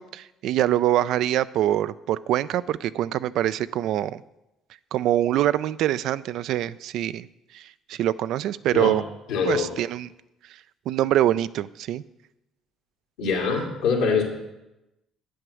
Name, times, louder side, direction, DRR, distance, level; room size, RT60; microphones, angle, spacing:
voice 1, 0.0-4.2 4.9-7.3 7.5-9.0 9.5-10.1 10.5-10.6 10.9-12.0, right 12 dB, 70° right, 16 dB, 0.3 m, -24 dB
voice 2, 9.3-9.7 13.2-14.2, left 5 dB, 85° left, -1 dB, 2.2 m, -23 dB
8.3 x 7.8 x 6.2 m, 0.95 s
supercardioid pair, 70°, 0 cm